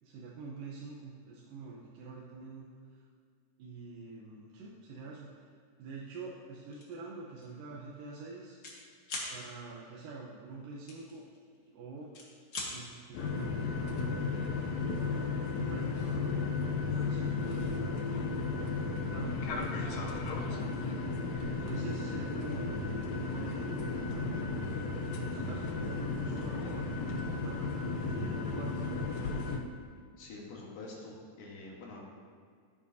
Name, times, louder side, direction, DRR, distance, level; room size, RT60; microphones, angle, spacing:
voice 1, 0.0-3.0 3.6-5.5 5.8-8.6 9.3-11.2 11.6-12.1 12.7-14.3 15.0-16.3 16.8-18.0 18.6-20.7 21.4-24.3 25.0-27.6 28.1-28.8, right 3 dB, 75° right, -4 dB, 2.4 m, -46 dB
sound 1, 6.7-7.0 7.4-7.6 7.9-8.8 9.0-9.3 10.9-11.7 12.0-12.7, left 2 dB, 45° left, 1.3 m, -40 dB
sound 2, 13.1-29.6, left 3 dB, 85° left, 1.5 m, -34 dB
voice 2, 30.2-32.0, left 2 dB, 70° left, -2 dB, 3.1 m, -46 dB
15.0 x 8.7 x 2.8 m, 2.1 s
omnidirectional pair, 4.2 m